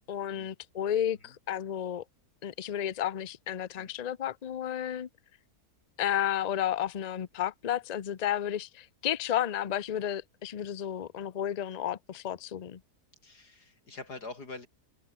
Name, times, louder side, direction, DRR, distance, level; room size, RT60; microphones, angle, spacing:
voice 1, 0.1-2.0 2.4-5.1 6.0-12.8, left 10 dB, 45° left, 0.5 m, -32 dB
voice 2, 13.2-14.7, left 3 dB, 80° left, 5.1 m, -44 dB
omnidirectional pair, 1.7 m